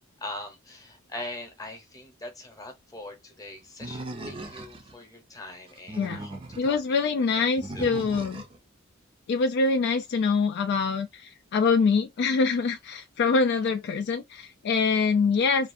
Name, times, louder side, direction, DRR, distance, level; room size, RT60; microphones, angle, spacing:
voice 1, 0.0-6.4 6.6-7.9, left 2 dB, 15° left, 0.8 m, -42 dB
Animal, 3.8-5.0 5.7-6.8 7.6-8.6, right 1 dB, 25° right, 0.4 m, -38 dB
voice 2, 6.6-8.4 9.3-15.7, left 4 dB, 55° left, 0.3 m, -24 dB
2.5 x 2.3 x 2.5 m
head